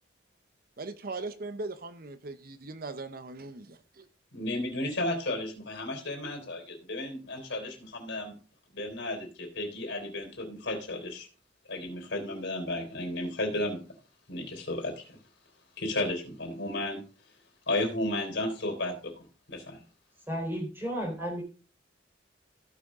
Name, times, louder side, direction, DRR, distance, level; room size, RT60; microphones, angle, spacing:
voice 1, 0.8-4.1, right 3 dB, 55° right, 11 dB, 0.8 m, -39 dB
voice 2, 4.3-8.3 8.7-11.3 11.7-13.8 14.3-15.1 15.8-17.0 17.7-19.8, left 1 dB, 80° left, 2 dB, 3.6 m, -33 dB
voice 3, 20.3-21.4, equal, 10° right, 0 dB, 3.8 m, -33 dB
16.0 x 6.3 x 3.7 m, 0.36 s
head